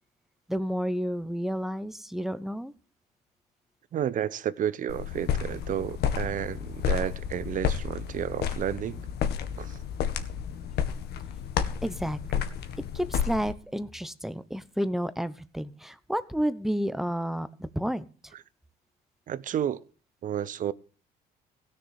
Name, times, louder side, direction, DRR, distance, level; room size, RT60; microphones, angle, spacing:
voice 1, 0.5-2.7 11.8-12.4 12.9-18.1, equal, ahead, 1.0 m, -31 dB
voice 2, 3.9-9.0 9.6-9.8 19.3-19.8 20.2-20.7, right 10 dB, 50° right, 0.9 m, -31 dB
sound 1, 4.9-13.5, left 8 dB, 75° left, 1.8 m, -31 dB
16.5 x 6.7 x 7.6 m
cardioid pair, 110°, 17 cm